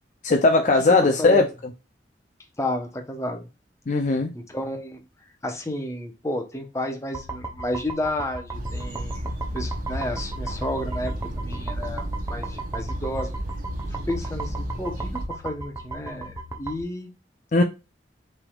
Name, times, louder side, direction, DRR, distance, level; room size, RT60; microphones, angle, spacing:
voice 1, 0.2-1.5 3.9-4.3 17.5-17.6, left 3 dB, 45° left, 0.5 m, -18 dB
voice 2, 2.6-3.5 4.3-5.0 5.4-9.3 9.5-13.3 14.1-17.1, left 1 dB, 15° left, 1.0 m, -31 dB
sound 1, 7.1-16.8, right 3 dB, 20° right, 0.8 m, -37 dB
sound 2, 8.5-15.3, equal, 55° right, 0.8 m, -32 dB
5.9 x 3.5 x 2.4 m
head